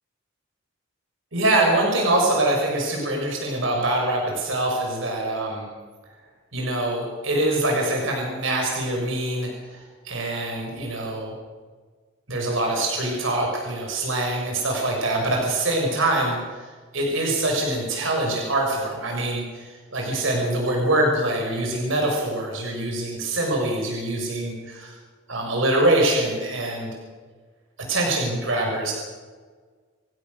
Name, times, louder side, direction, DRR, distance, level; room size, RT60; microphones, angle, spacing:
voice 1, 1.3-5.6 6.5-11.3 12.3-16.6 16.9-19.7 19.9-24.9 25.3-27.0 27.9-28.9, right 1 dB, 70° right, 0 dB, 5.6 m, -24 dB
27.5 x 16.0 x 6.7 m, 1.5 s
head